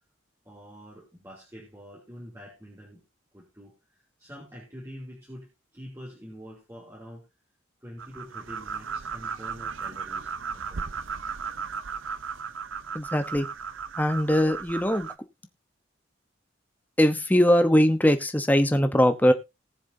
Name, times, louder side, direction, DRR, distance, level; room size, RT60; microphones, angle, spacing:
voice 1, 0.4-3.0 3.3-7.3 7.8-10.9, equal, 15° right, -4 dB, 3.0 m, -46 dB
sound 1, 8.0-15.1, right 6 dB, 80° right, 0.7 m, -36 dB
voice 2, 12.9-13.5 14.0-15.1 17.0-19.3, equal, 10° left, 8 dB, 1.0 m, -21 dB
19.0 x 7.1 x 2.8 m, 0.25 s
head